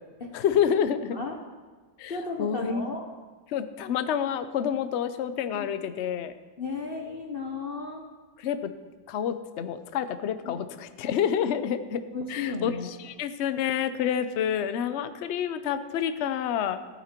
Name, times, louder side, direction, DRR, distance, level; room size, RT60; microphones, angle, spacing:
voice 1, 0.3-1.2 2.0-2.9 3.5-6.3 8.4-8.7 9.1-12.0 12.3-16.8, left 8 dB, 75° left, 11 dB, 0.6 m, -28 dB
voice 2, 2.1-3.0 5.5-5.7 6.6-8.1 10.4-10.5 11.5-11.6 12.1-12.9, left 4 dB, 45° left, 2 dB, 0.8 m, -34 dB
15.0 x 9.3 x 4.4 m, 1.4 s
omnidirectional pair, 2.0 m